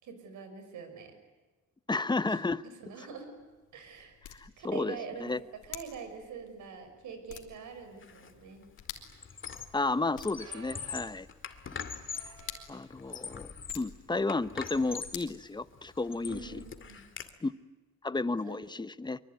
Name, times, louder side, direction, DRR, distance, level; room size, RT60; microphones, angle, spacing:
voice 1, 0.0-1.1 2.1-2.3 2.8-3.4 3.7-4.2 4.6-5.3 5.6-8.6 16.2-17.1 18.5-18.6, right 5 dB, 80° right, 8 dB, 5.8 m, -44 dB
voice 2, 1.9-2.6 4.3-5.4 9.7-11.3 12.3-12.4 12.7-16.6 17.4-17.5 18.0-19.2, left 3 dB, 15° left, 15 dB, 0.9 m, -32 dB
sound 1, 3.0-16.2, left 10 dB, 85° left, 3.2 m, -51 dB
Squeak, 8.0-8.3 8.6-9.9 10.2-12.4 12.9-13.9 14.3-15.2 15.7-17.3, left 6 dB, 40° left, 2.4 m, -42 dB
sound 2, 10.4-12.9 13.6-13.9 14.2-14.3 15.2-15.5 17.1-17.2, right 5 dB, 55° right, 4.6 m, -55 dB
24.5 x 24.0 x 9.5 m, 1.2 s
cardioid pair, 90°, 30 cm